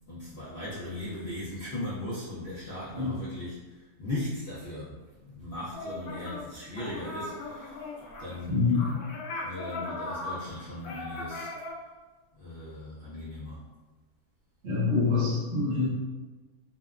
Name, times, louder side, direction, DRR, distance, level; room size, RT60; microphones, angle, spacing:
voice 1, 0.1-4.9 5.2-7.9 8.2-9.0 9.4-11.5 12.4-13.6, left 1 dB, 60° left, -10 dB, 0.6 m, -38 dB
sound 1, 5.7-6.5 6.7-11.7, left 2 dB, 90° left, 1.1 m, -38 dB
voice 2, 8.5-8.8 14.6-15.9, left 4 dB, 55° right, -7 dB, 1.0 m, -25 dB
2.8 x 2.2 x 2.3 m, 1.2 s
omnidirectional pair, 1.6 m